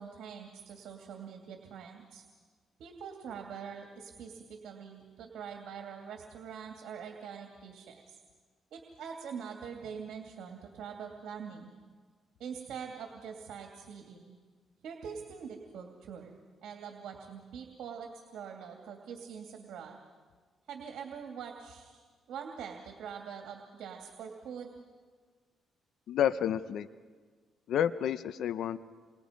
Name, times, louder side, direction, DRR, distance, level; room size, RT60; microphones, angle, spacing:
voice 1, 0.0-2.2 2.8-8.2 8.7-11.7 12.4-14.4 14.8-16.3 16.6-20.0 20.7-24.7, right 7 dB, 75° right, 2 dB, 2.7 m, -44 dB
voice 2, 26.1-26.9 27.7-28.8, left 9 dB, 75° left, 14 dB, 0.7 m, -30 dB
28.5 x 25.5 x 5.3 m, 1.5 s
cardioid pair, 90°, 0 cm